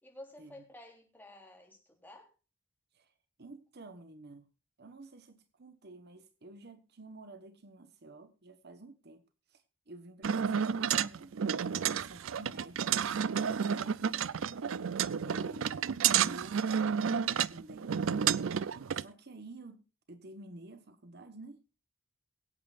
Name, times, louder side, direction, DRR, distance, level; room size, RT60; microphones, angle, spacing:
voice 1, 0.0-2.3, left 1 dB, 10° left, 3.3 m, -52 dB
voice 2, 3.4-4.5 4.8-11.3 11.6-12.9 13.2-14.3 15.2-18.0 18.9-21.6, right 2 dB, 55° right, 1.2 m, -51 dB
sound 1, 10.2-19.0, right 8 dB, 90° right, 0.5 m, -31 dB
23.0 x 8.6 x 2.5 m
head